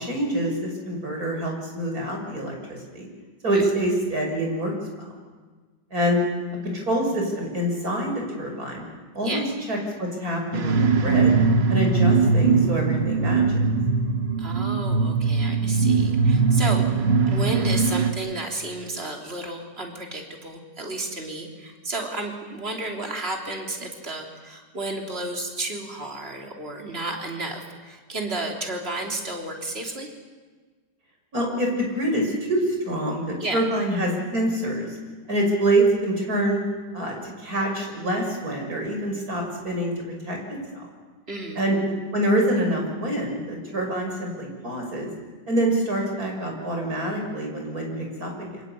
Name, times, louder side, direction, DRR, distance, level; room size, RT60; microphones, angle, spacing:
voice 1, 0.0-3.1 3.4-4.7 5.0-5.1 5.9-6.2 6.6-8.8 9.1-11.3 11.7-13.4 31.3-35.0 35.3-36.6 36.9-39.9 40.2-40.8 41.6-45.1 45.5-48.6, right 1 dB, 55° right, 1 dB, 6.6 m, -26 dB
sound 1, 10.5-18.1, right 4 dB, 90° right, 2.4 m, -21 dB
voice 2, 14.4-16.8 17.3-30.1 33.4-33.6 41.3-41.6, right 2 dB, 35° right, 2 dB, 3.7 m, -32 dB
27.5 x 25.5 x 8.4 m, 1.4 s
omnidirectional pair, 1.9 m